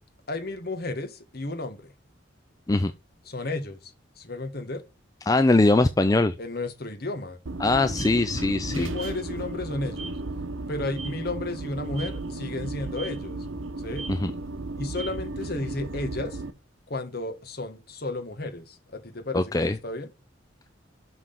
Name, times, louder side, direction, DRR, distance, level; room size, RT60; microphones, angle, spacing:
voice 1, 0.3-1.9 3.2-4.8 6.4-7.4 8.7-10.2 10.7-13.5 13.8-14.1 14.8-16.4 16.9-20.1, left 2 dB, 50° left, 1.5 m, -33 dB
voice 2, 5.3-6.3 7.6-8.9 14.2-14.3 19.3-19.7, left 2 dB, 20° left, 0.4 m, -21 dB
sound 1, 7.5-16.5, right 2 dB, 85° right, 0.9 m, -34 dB
6.2 x 5.7 x 6.7 m
head